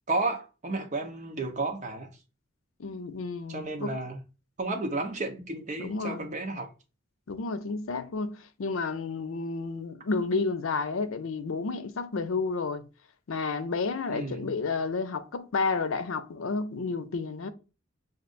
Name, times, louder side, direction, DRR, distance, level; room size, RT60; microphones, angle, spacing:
voice 1, 0.1-2.1 3.5-4.2 4.6-6.7 14.1-14.5, right 2 dB, 35° right, 0.9 m, -32 dB
voice 2, 2.8-3.9 5.8-6.3 7.3-12.9 13.3-17.5, left 4 dB, 85° left, 0.6 m, -31 dB
6.3 x 2.5 x 2.4 m
head